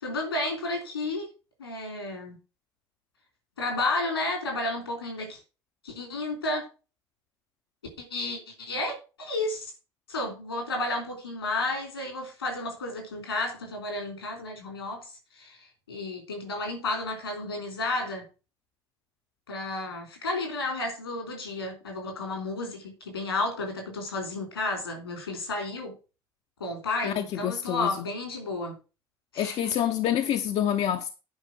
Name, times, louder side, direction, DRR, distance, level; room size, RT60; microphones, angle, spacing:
voice 1, 0.0-1.3 1.6-2.4 3.6-5.4 5.8-6.6 8.1-9.7 10.1-18.2 19.5-25.9 26.6-28.7 29.3-29.7, left 2 dB, 85° left, 3.3 m, -32 dB
voice 2, 27.0-28.1 29.4-31.1, left 10 dB, 55° left, 0.9 m, -27 dB
10.5 x 5.3 x 6.1 m
figure-of-eight pair, 50°, 12 cm